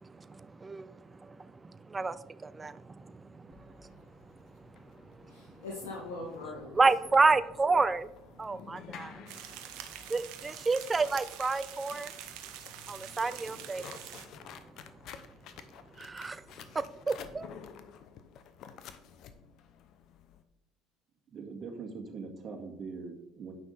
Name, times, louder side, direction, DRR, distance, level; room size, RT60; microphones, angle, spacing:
voice 1, 0.0-3.9 5.2-5.3 6.7-8.1 8.4-9.2 10.1-12.1 12.9-14.0 16.0-16.4 16.7-17.5, right 3 dB, 25° right, 14 dB, 0.5 m, -30 dB
sound 1, 3.5-20.4, left 7 dB, 60° left, 0.8 m, -52 dB
voice 2, 5.2-6.8 8.4-9.9, left 2 dB, 80° left, -3 dB, 1.7 m, -44 dB
sound 2, 9.3-14.3, right 10 dB, 70° right, 1.0 m, -45 dB
voice 3, 21.3-23.5, right 4 dB, 40° right, 1 dB, 2.1 m, -42 dB
9.4 x 5.8 x 4.1 m, 0.82 s
hypercardioid pair, 70°, 0 cm